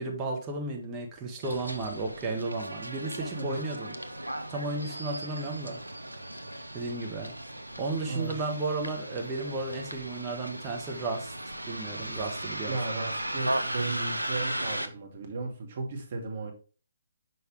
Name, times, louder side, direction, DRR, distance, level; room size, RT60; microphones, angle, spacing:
voice 1, 0.0-3.9 4.5-5.8 6.7-7.3 7.8-11.3 11.7-12.8, right 3 dB, 20° right, 0 dB, 1.5 m, -33 dB
Bus, 1.4-14.9, right 1 dB, 90° right, 0.7 m, -36 dB
voice 2, 8.1-8.5 12.7-16.5, right 3 dB, 45° right, 2 dB, 1.9 m, -35 dB
6.1 x 5.2 x 3.2 m, 0.37 s
figure-of-eight pair, 140°, 0 cm